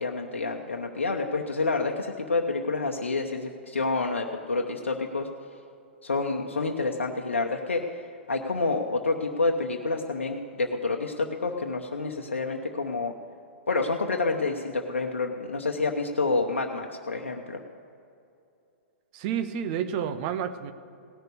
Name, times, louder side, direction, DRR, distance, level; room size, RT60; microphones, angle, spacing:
voice 1, 0.0-5.3 6.0-13.1 13.7-17.6, left 3 dB, 80° left, 2 dB, 0.9 m, -28 dB
voice 2, 19.1-20.7, right 8 dB, 40° right, 10 dB, 0.9 m, -30 dB
17.5 x 6.7 x 8.1 m, 2.6 s
figure-of-eight pair, 110°, 7 cm